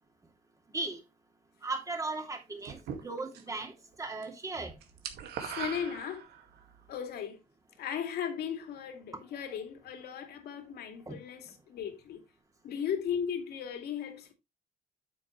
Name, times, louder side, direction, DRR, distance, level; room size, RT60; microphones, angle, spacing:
voice 1, 0.7-1.0 1.6-3.7 4.0-4.7 11.1-11.2, right 3 dB, 20° right, 2.8 m, -37 dB
sound 1, 2.6-3.6 3.9-4.3 4.5-6.6, right 8 dB, 75° right, 2.0 m, -40 dB
voice 2, 5.4-6.2 6.9-7.4 7.8-12.2 12.6-14.3, left 8 dB, 70° left, 2.5 m, -36 dB
8.9 x 7.6 x 3.1 m
cardioid pair, 110°, 17 cm